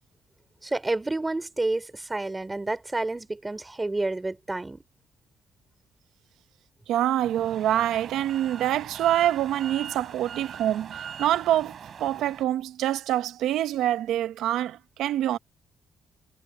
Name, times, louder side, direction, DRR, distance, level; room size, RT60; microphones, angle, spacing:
voice 1, 0.6-4.8, right 2 dB, 15° right, 3.5 m, -29 dB
voice 2, 6.9-15.4, right 12 dB, 85° right, 0.9 m, -26 dB
sound 1, 7.2-12.4, right 7 dB, 55° right, 5.3 m, -41 dB
cardioid pair, 90°, 0 cm